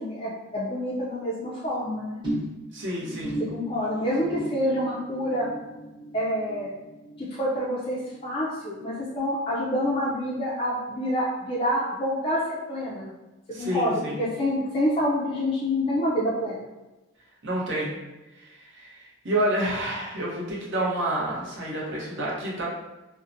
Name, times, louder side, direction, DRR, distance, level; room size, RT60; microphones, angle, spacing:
voice 1, 0.0-2.2 3.4-5.5 6.1-6.7 7.2-13.1 13.6-16.7, equal, 25° left, -7 dB, 0.4 m, -27 dB
sound 1, 2.2-8.8 9.1-9.5 9.8-9.9, right 1 dB, 20° right, 0.8 m, -37 dB
voice 2, 2.7-3.4 13.5-14.3 17.4-18.0 18.4-22.7, right 1 dB, 60° right, -4 dB, 0.8 m, -29 dB
2.6 x 2.0 x 2.5 m, 1.0 s
head